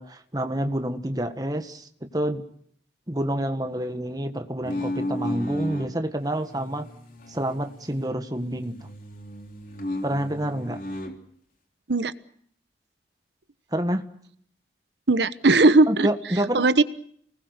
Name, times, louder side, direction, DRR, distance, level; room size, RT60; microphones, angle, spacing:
voice 1, 0.0-2.4 3.1-6.9 7.3-8.7 10.0-10.8 13.7-14.0 15.9-16.7, right 1 dB, 20° right, 7 dB, 1.6 m, -28 dB
sound 1, 4.6-5.9 6.4-8.2 8.4-11.2, left 1 dB, 50° left, 3.6 m, -34 dB
voice 2, 15.1-16.1 16.5-16.8, right 2 dB, 80° right, 13 dB, 1.1 m, -18 dB
29.5 x 20.0 x 6.7 m, 0.64 s
head